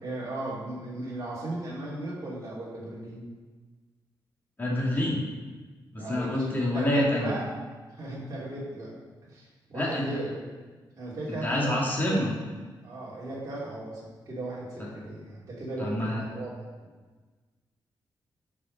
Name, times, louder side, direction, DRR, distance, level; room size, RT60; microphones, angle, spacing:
voice 1, 0.0-3.2 6.0-7.4 7.9-8.9 9.2-10.4 11.0-11.9 12.8-16.9, right 2 dB, 40° right, -8 dB, 2.7 m, -36 dB
voice 2, 4.6-5.2 5.9-7.3 9.7-10.0 11.4-12.4 14.8-14.9 15.8-16.2, left 1 dB, 20° left, -4 dB, 2.1 m, -27 dB
10.5 x 5.0 x 4.0 m, 1.4 s
wide cardioid pair, 135°, 8 cm